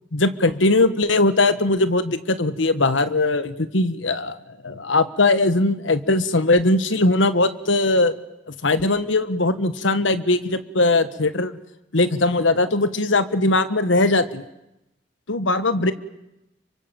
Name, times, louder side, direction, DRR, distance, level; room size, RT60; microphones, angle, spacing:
voice 1, 0.1-8.1 8.5-11.6 11.9-14.4 15.3-15.9, left 2 dB, 75° left, 12 dB, 1.4 m, -20 dB
28.0 x 24.5 x 7.6 m, 0.88 s
head